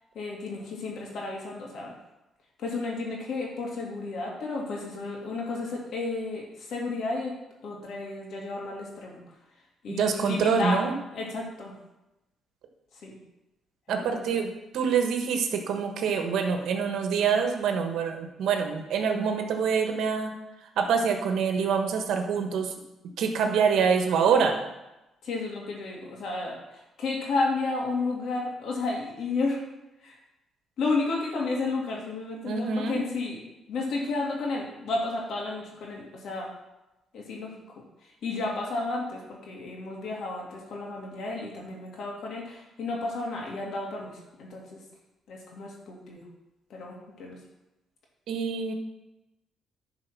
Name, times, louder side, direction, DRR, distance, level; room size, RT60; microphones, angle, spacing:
voice 1, 0.1-1.9 2.6-7.3 7.6-9.4 9.8-10.8 11.1-11.7 12.9-13.2 13.9-14.2 25.2-29.6 30.0-30.2 30.8-33.4 33.7-36.5 37.1-37.5 38.0-44.8 45.3-46.2 46.7-47.4, left 3 dB, 70° left, -2 dB, 2.8 m, -32 dB
voice 2, 9.9-10.9 13.9-20.3 20.8-22.7 23.2-24.5 32.5-33.0 48.3-48.7, right 6 dB, 75° right, 4 dB, 1.4 m, -25 dB
10.5 x 4.8 x 6.1 m, 0.96 s
cardioid pair, 90°, 0 cm